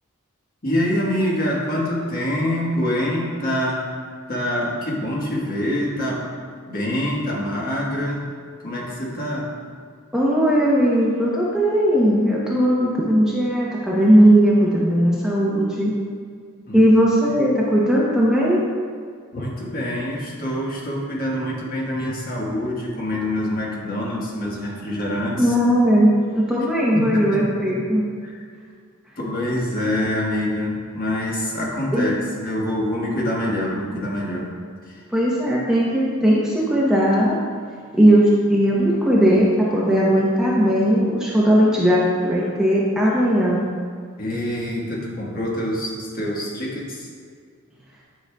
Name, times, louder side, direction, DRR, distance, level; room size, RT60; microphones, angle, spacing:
voice 1, 0.6-3.9 4.3-6.3 6.7-8.3 8.6-9.5 16.7-16.9 19.3-25.5 26.9-27.8 28.2-28.4 29.2-34.5 34.9-35.0 44.2-47.1, left 1 dB, 40° left, -4 dB, 1.4 m, -25 dB
voice 2, 10.1-15.9 16.7-18.6 25.4-28.0 31.9-32.1 35.1-37.4 37.9-43.6, equal, 5° right, -6 dB, 0.7 m, -18 dB
9.8 x 5.4 x 2.3 m, 2.1 s
head